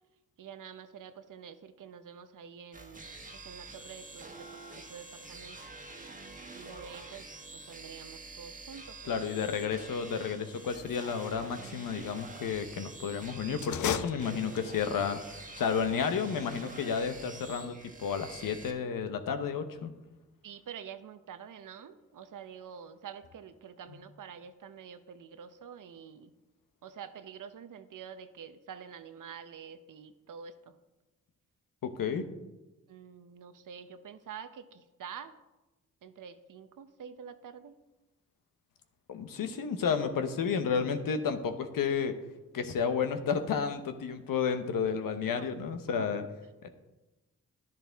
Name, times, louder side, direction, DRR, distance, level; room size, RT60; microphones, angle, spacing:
voice 1, 0.4-5.6 6.5-9.2 20.4-26.3 26.8-30.8 31.8-31.9 32.9-35.3 36.0-37.7 45.4-45.5 46.0-46.1, right 7 dB, 70° right, 11 dB, 0.8 m, -47 dB
sound 1, 2.7-18.7, right 3 dB, 25° right, 1.5 m, -47 dB
voice 2, 9.0-19.9 31.8-32.2 39.1-42.1 42.5-46.2 46.6-46.7, left 6 dB, 80° left, 8 dB, 1.0 m, -31 dB
sound 2, 13.5-14.9, left 9 dB, 65° left, 0.6 m, -35 dB
10.5 x 10.5 x 3.5 m, 1.1 s
cardioid pair, 60°, 33 cm